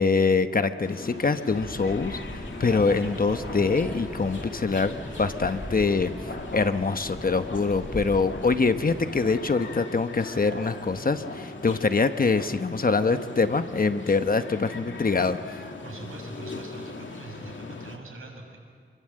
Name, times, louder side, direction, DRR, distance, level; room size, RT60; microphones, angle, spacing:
voice 1, 0.0-6.1 6.5-15.6, left 4 dB, 45° left, 9 dB, 1.0 m, -24 dB
sound 1, 0.8-18.0, left 3 dB, 65° left, 2.4 m, -39 dB
sound 2, 1.5-9.3, equal, ahead, 4.4 m, -40 dB
sound 3, 2.9-6.5 7.8-7.9, equal, 20° right, 4.2 m, -45 dB
voice 2, 15.8-18.6, right 2 dB, 85° right, 0 dB, 6.6 m, -43 dB
27.5 x 23.5 x 7.7 m, 2.1 s
wide cardioid pair, 115°, 21 cm